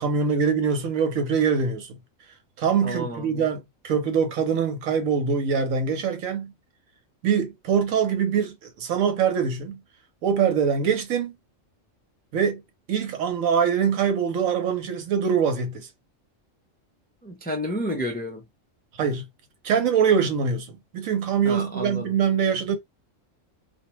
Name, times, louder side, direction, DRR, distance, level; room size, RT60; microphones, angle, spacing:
voice 1, 0.0-1.9 2.6-6.5 7.2-9.8 10.2-11.4 12.3-12.6 12.9-15.9 19.0-19.2 19.6-22.8, right 6 dB, 90° right, 1.1 m, -23 dB
voice 2, 2.8-3.5 17.2-18.4 21.4-22.1, equal, 15° left, 0.3 m, -31 dB
2.4 x 2.2 x 3.0 m
omnidirectional pair, 1.3 m